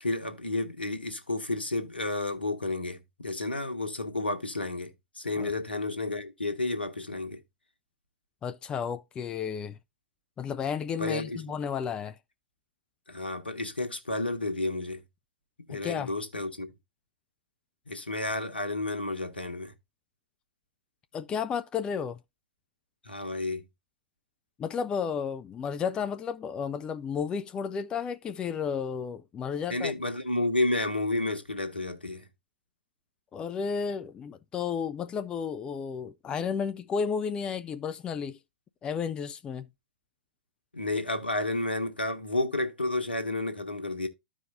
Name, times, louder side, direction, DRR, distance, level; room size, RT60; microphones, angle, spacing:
voice 1, 0.0-7.4 11.0-11.4 13.1-15.0 15.7-16.7 17.9-19.7 23.0-23.6 29.7-32.2 40.7-44.1, left 2 dB, 80° left, 1.3 m, -31 dB
voice 2, 8.4-9.8 10.4-12.2 15.7-16.1 21.1-22.2 24.6-29.9 33.3-38.4 38.8-39.7, left 6 dB, 15° left, 0.3 m, -32 dB
14.0 x 4.8 x 2.6 m
figure-of-eight pair, 105°, 5 cm